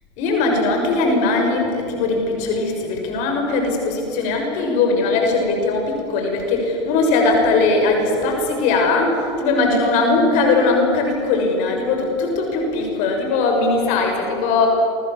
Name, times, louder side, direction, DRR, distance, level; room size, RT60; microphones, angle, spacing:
voice 1, 0.2-14.7, left 3 dB, 60° left, 2 dB, 6.5 m, -19 dB
29.0 x 24.0 x 7.5 m, 2.6 s
hypercardioid pair, 90°, 14 cm